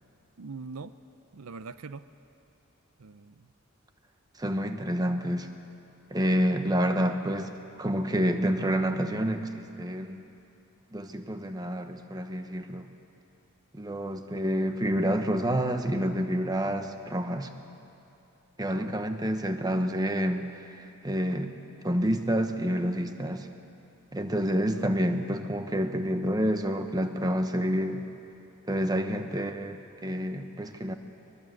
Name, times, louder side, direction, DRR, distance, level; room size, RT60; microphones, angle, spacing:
voice 1, 0.4-1.0 1.3-2.0 3.0-3.5 18.6-19.0 24.7-24.9, right 4 dB, 80° right, 13 dB, 0.6 m, -42 dB
voice 2, 4.4-5.5 6.1-7.5 7.8-10.2 10.9-12.9 13.7-17.5 18.6-21.5 21.8-23.5 24.1-28.0 28.7-30.9, equal, 20° right, 7 dB, 1.1 m, -28 dB
22.0 x 21.5 x 7.8 m, 2.7 s
head